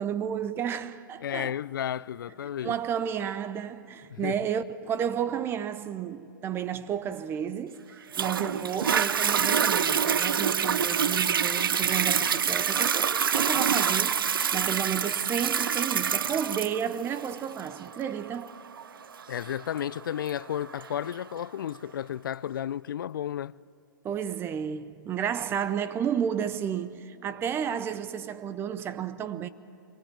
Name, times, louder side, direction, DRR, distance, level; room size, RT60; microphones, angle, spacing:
voice 1, 0.0-1.6 2.4-18.5 24.0-29.5, right 8 dB, 20° right, 0.7 m, -32 dB
voice 2, 1.2-2.8 4.1-4.4 11.1-11.2 19.3-23.5, left 10 dB, 70° left, 0.4 m, -33 dB
Toilet flush, 8.1-21.2 21.8-21.9, right 7 dB, 80° right, 0.6 m, -27 dB
23.5 x 17.5 x 9.0 m
hypercardioid pair, 130°, 11 cm